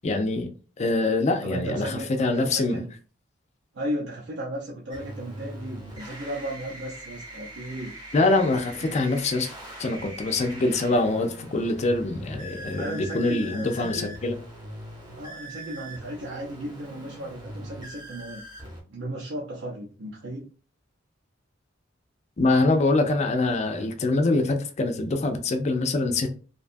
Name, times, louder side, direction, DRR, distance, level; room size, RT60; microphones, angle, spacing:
voice 1, 0.0-0.5 0.8-2.8 8.1-9.5 9.8-14.4 22.4-26.4, left 2 dB, 35° left, 0.4 m, -24 dB
voice 2, 1.4-2.1 2.3-2.9 3.7-7.9 8.8-8.9 12.7-14.1 15.1-18.4 18.9-20.5, right 1 dB, 65° right, 0.5 m, -35 dB
sound 1, 4.9-18.8, equal, 20° right, 0.7 m, -42 dB
2.6 x 2.2 x 2.5 m
head